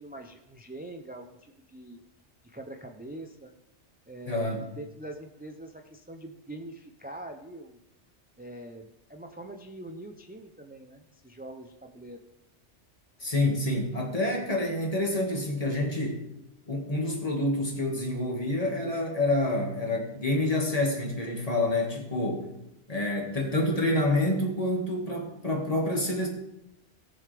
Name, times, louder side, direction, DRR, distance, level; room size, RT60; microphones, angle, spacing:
voice 1, 0.0-2.0 2.4-3.5 4.1-7.8 8.4-12.2, right 1 dB, 10° right, 4 dB, 0.4 m, -43 dB
voice 2, 4.3-4.7 13.2-16.2 16.7-22.5 22.9-26.3, left 1 dB, 30° left, -1 dB, 2.0 m, -28 dB
19.0 x 6.8 x 3.4 m, 0.85 s
omnidirectional pair, 1.2 m